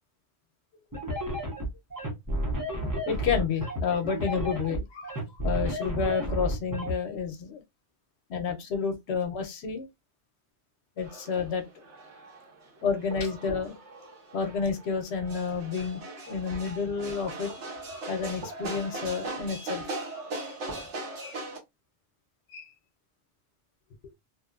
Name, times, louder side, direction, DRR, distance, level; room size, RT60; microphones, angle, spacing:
sound 1, 0.9-6.9, equal, 25° right, 0.6 m, -31 dB
voice 1, 2.7-7.6 8.3-9.9 11.0-11.6 12.8-13.8 14.3-16.0 16.3-17.5 18.1-19.9 20.4-20.5 21.2-21.4 22.5-22.7, left 6 dB, 75° left, 0.8 m, -30 dB
sound 2, 11.0-21.6, right 2 dB, 80° right, 1.1 m, -39 dB
2.9 x 2.0 x 2.3 m
omnidirectional pair, 1.2 m